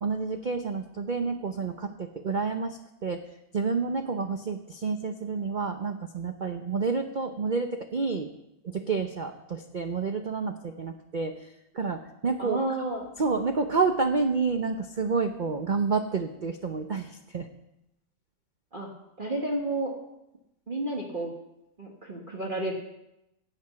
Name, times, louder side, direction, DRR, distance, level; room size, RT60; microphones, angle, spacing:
voice 1, 0.0-3.2 3.5-8.3 8.6-11.5 11.7-12.6 13.2-17.5, right 4 dB, 85° right, 6 dB, 0.4 m, -29 dB
voice 2, 12.4-13.1 18.7-18.9 19.2-19.9 20.7-21.3 21.8-22.7, right 2 dB, 30° right, -2 dB, 1.4 m, -31 dB
15.5 x 7.9 x 5.8 m, 0.88 s
omnidirectional pair, 1.9 m